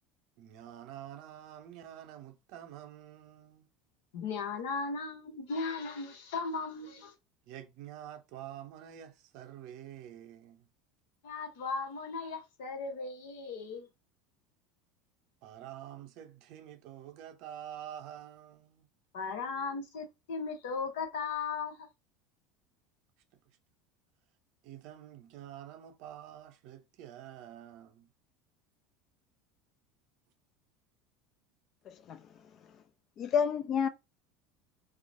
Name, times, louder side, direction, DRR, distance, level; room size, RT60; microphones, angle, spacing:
voice 1, 0.4-3.7 7.5-10.7 15.4-18.9 23.3-23.6 24.6-28.1, right 11 dB, 60° right, 0.5 m, -48 dB
voice 2, 4.1-7.1 11.2-13.9 19.1-21.9, left 4 dB, 65° left, 0.7 m, -37 dB
voice 3, 31.9-32.5 33.2-33.9, left 7 dB, 45° left, 0.3 m, -31 dB
3.0 x 2.0 x 2.5 m
hypercardioid pair, 75°, 0 cm